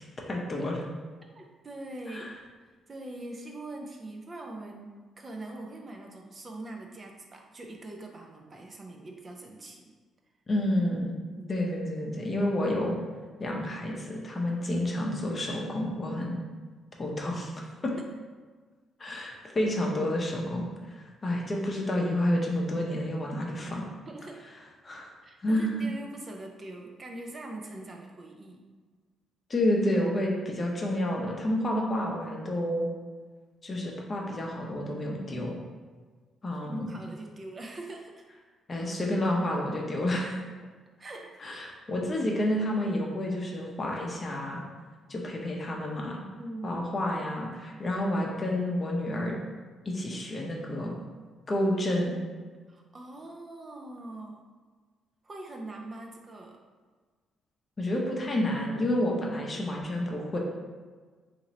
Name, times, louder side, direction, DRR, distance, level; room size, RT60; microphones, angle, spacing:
voice 1, 0.3-0.8 2.1-2.3 10.5-11.2 11.5-13.0 13.4-16.4 17.0-17.5 17.8-17.9 19.0-20.7 21.0-23.9 24.8-25.1 25.4-25.9 29.5-32.9 33.6-35.6 36.4-36.9 38.7-40.3 41.4-44.6 45.1-46.2 46.6-49.4 49.9-51.0 51.5-52.2 57.8-60.4, left 1 dB, 35° left, -1 dB, 0.6 m, -29 dB
voice 2, 1.3-2.4 2.9-9.9 11.2-11.6 17.9-18.0 24.1-24.5 25.2-28.7 36.5-38.2 41.0-41.5 46.4-46.8 52.7-54.4 55.2-56.6, right 2 dB, 35° right, 1 dB, 0.4 m, -43 dB
2.9 x 2.5 x 4.0 m, 1.5 s
cardioid pair, 90°, 0 cm